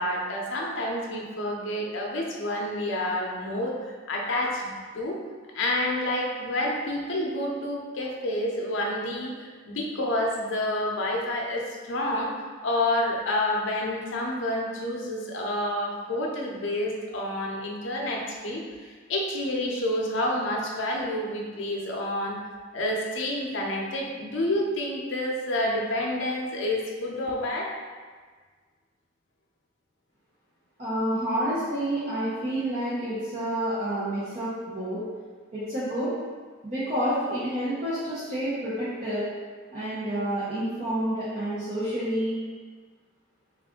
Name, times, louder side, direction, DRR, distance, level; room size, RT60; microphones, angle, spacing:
voice 1, 0.0-5.2 5.5-12.3 12.6-22.4 22.7-27.7, left 1 dB, 70° left, -2 dB, 0.6 m, -29 dB
voice 2, 30.8-35.0 35.5-36.1 36.6-39.3 39.7-42.4, right 1 dB, 35° right, -12 dB, 0.8 m, -29 dB
3.6 x 2.4 x 3.6 m, 1.5 s
head